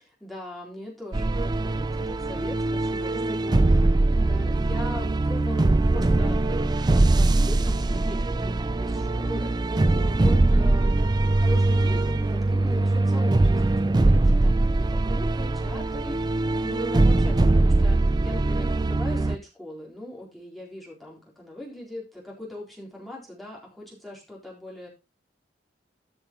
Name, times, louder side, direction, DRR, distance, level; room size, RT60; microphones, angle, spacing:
voice 1, 0.0-6.4 6.8-13.6 13.9-24.9, left 1 dB, ahead, -4 dB, 3.9 m, -41 dB
sound 1, 1.1-19.4, right 2 dB, 25° right, 0.4 m, -22 dB
13.0 x 6.3 x 3.8 m, 0.27 s
head